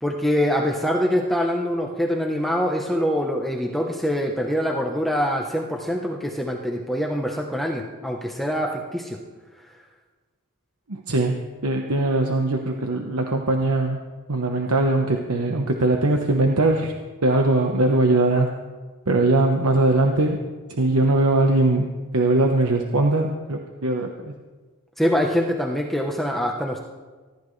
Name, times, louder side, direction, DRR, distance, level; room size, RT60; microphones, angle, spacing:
voice 1, 0.0-9.2 25.0-26.8, equal, ahead, 0 dB, 0.9 m, -24 dB
voice 2, 10.9-14.0 14.3-16.9 17.2-18.5 19.1-20.4 20.7-24.3, right 2 dB, 75° right, 2 dB, 1.1 m, -21 dB
24.0 x 13.0 x 3.3 m, 1.4 s
head